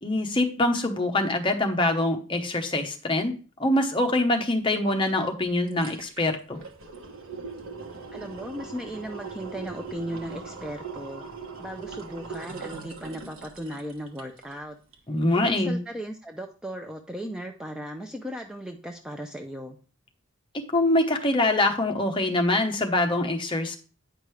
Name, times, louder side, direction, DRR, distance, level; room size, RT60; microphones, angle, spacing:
voice 1, 0.0-3.3 3.6-6.6 15.1-15.8 20.7-23.8, left 2 dB, 25° left, 4 dB, 0.9 m, -24 dB
sound 1, 5.1-5.2 5.5-14.6 14.9-15.0, right 4 dB, 85° right, 1.2 m, -40 dB
voice 2, 8.1-11.2 11.6-14.8 15.4-19.8, equal, 5° right, 3 dB, 0.5 m, -36 dB
9.1 x 5.2 x 3.2 m, 0.37 s
head